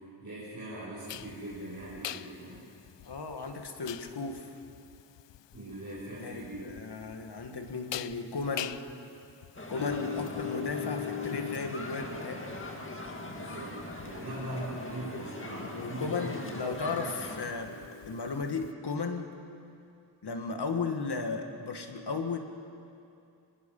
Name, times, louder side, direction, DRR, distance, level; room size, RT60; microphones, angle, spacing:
voice 1, 0.2-2.7 5.5-6.7 9.9-10.2 13.3-16.5, right 1 dB, 45° right, -9 dB, 6.0 m, -41 dB
sound 1, 1.1-18.7, left 11 dB, 85° left, 0.6 m, -42 dB
voice 2, 3.0-4.6 6.2-8.8 9.7-12.5 14.2-14.3 14.7-14.8 15.7-19.3 20.2-22.4, left 4 dB, 65° left, 5 dB, 1.8 m, -35 dB
sound 2, 9.6-17.5, left 2 dB, 30° left, 2.0 m, -41 dB
28.0 x 21.0 x 5.5 m, 2.5 s
wide cardioid pair, 130°, 42 cm